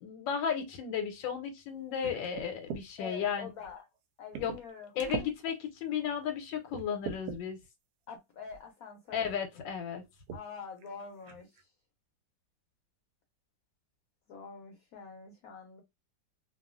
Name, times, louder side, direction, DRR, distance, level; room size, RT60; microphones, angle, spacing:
voice 1, 0.0-3.5 4.4-4.5 5.0-7.6 9.1-10.0, left 7 dB, 85° left, 1.3 m, -34 dB
sound 1, 2.0-2.9 3.6-3.7 4.3-4.7 5.0-5.3 6.0-6.1 6.7-7.4 8.5-8.6 9.1-9.3 10.3-10.5 10.8-10.9 11.2-11.6, right 6 dB, 70° right, 1.0 m, -40 dB
voice 2, 3.0-3.9 4.2-5.3 8.1-9.2 10.3-11.7 14.3-15.8, left 5 dB, 65° left, 0.9 m, -46 dB
2.8 x 2.4 x 2.4 m
omnidirectional pair, 2.0 m